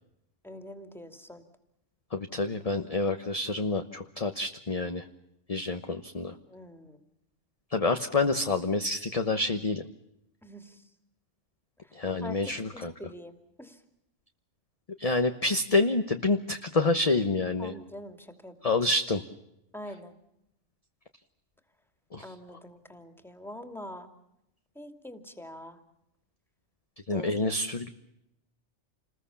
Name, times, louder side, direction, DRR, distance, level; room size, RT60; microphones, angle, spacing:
voice 1, 0.4-1.4 6.5-7.0 10.4-10.9 11.8-13.8 17.6-18.8 19.7-20.1 22.2-24.1 24.7-25.8 27.1-27.6, left 1 dB, ahead, 7 dB, 2.6 m, -45 dB
voice 2, 2.1-5.1 5.5-6.3 7.7-9.8 11.9-12.9 15.0-17.7 18.6-19.2 22.1-22.2 27.1-27.9, left 3 dB, 30° left, 7 dB, 1.1 m, -28 dB
29.5 x 20.5 x 7.1 m, 0.83 s
omnidirectional pair, 1.2 m